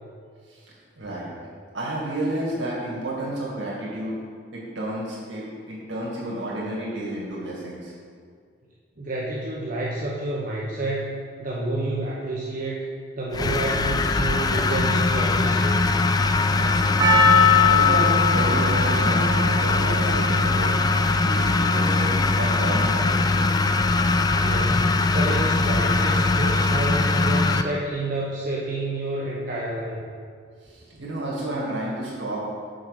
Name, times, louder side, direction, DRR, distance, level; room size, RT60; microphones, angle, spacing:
voice 1, 1.0-1.3 1.7-4.2 4.5-7.9 16.5-20.9 21.2-23.5 30.6-32.4, right 1 dB, 85° right, -6 dB, 2.1 m, -31 dB
voice 2, 9.0-12.8 13.2-15.8 24.4-30.1, right 2 dB, 50° right, -6 dB, 1.0 m, -29 dB
sound 1, 13.3-27.6, left 3 dB, 20° left, 0.3 m, -21 dB
Percussion, 17.0-21.4 22.0-22.1, left 5 dB, 25° right, 0.7 m, -21 dB
6.3 x 5.1 x 6.6 m, 2.1 s
head